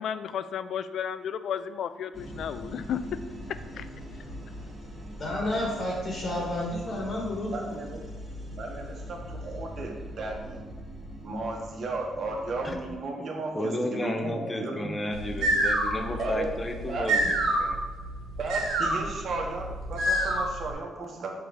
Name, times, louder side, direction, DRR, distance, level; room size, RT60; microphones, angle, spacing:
voice 1, 0.0-3.0 3.8-3.9, left 8 dB, 65° left, 12 dB, 0.3 m, -33 dB
sound 1, 2.1-12.9, equal, ahead, 1.4 m, -41 dB
voice 2, 5.1-7.8, left 1 dB, 45° left, -3 dB, 1.6 m, -31 dB
voice 3, 7.5-8.0 8.5-10.6 11.2-14.9 15.2-15.3 16.2-17.3 18.4-21.3, right 2 dB, 55° right, 1 dB, 1.3 m, -35 dB
voice 4, 12.6-17.8, left 1 dB, 25° left, 5 dB, 0.8 m, -33 dB
sound 2, 15.1-20.7, right 1 dB, 85° right, 1.1 m, -28 dB
6.2 x 3.1 x 5.2 m, 1.3 s
cardioid pair, 90°, 0 cm